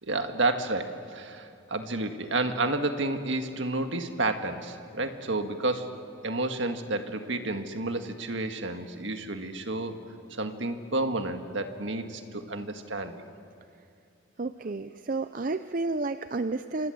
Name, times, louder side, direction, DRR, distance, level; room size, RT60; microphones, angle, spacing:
voice 1, 0.0-10.0 10.3-13.2, right 2 dB, 65° right, 6 dB, 1.8 m, -30 dB
voice 2, 14.4-16.9, right 3 dB, 45° right, 11 dB, 0.5 m, -31 dB
27.5 x 26.0 x 8.0 m, 2.5 s
head